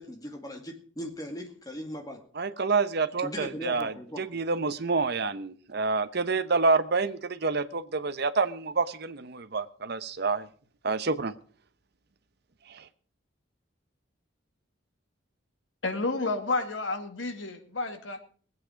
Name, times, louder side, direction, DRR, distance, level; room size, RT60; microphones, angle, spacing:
voice 1, 0.0-2.2 3.2-4.4, equal, 20° left, 4 dB, 2.2 m, -39 dB
voice 2, 2.3-10.5 10.8-11.3 12.7-12.9, right 4 dB, 55° right, 12 dB, 0.9 m, -28 dB
voice 3, 15.8-18.2, left 3 dB, 70° left, 6 dB, 2.0 m, -30 dB
20.5 x 8.4 x 5.1 m, 0.43 s
head